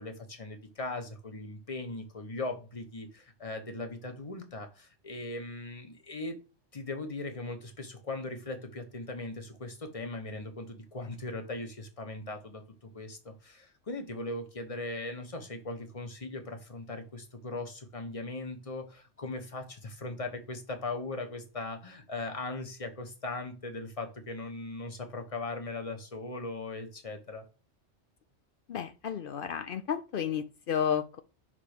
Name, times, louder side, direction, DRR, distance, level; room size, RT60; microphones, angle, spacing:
voice 1, 0.0-6.4 6.7-27.5, left 2 dB, 30° left, 5 dB, 1.1 m, -39 dB
voice 2, 28.7-31.2, left 8 dB, 60° left, 11 dB, 0.6 m, -32 dB
5.7 x 3.6 x 4.9 m, 0.32 s
omnidirectional pair, 1.2 m